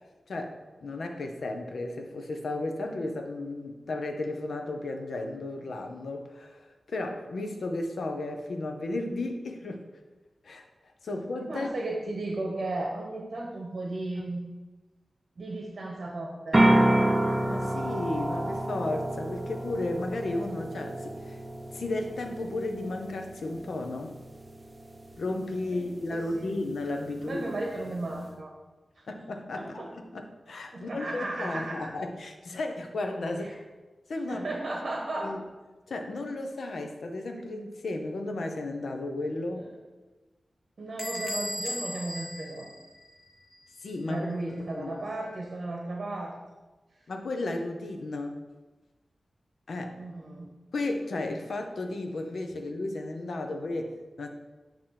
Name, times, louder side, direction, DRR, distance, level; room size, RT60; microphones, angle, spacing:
voice 1, 0.3-9.8 10.4-10.6 11.0-11.7 17.4-21.4 21.7-24.2 25.2-27.4 29.1-33.6 34.1-34.4 35.2-35.4 35.9-39.7 43.8-44.3 44.7-45.0 47.1-48.4 49.7-50.0 50.7-54.3, left 2 dB, 80° left, 4 dB, 0.8 m, -34 dB
voice 2, 11.5-14.5 15.4-16.9 25.7-25.8 26.1-26.5 27.2-28.5 29.5-29.9 30.7-31.9 33.4-33.5 34.3-35.3 39.5-39.7 40.8-42.7 44.1-46.3 50.0-50.5, right 2 dB, 55° right, -1 dB, 1.1 m, -35 dB
sound 1, 16.5-28.3, right 1 dB, 20° right, 0.7 m, -30 dB
Bell / Door, 41.0-43.5, equal, 20° left, 0.9 m, -37 dB
8.8 x 3.0 x 5.7 m, 1.2 s
wide cardioid pair, 110°, 0 cm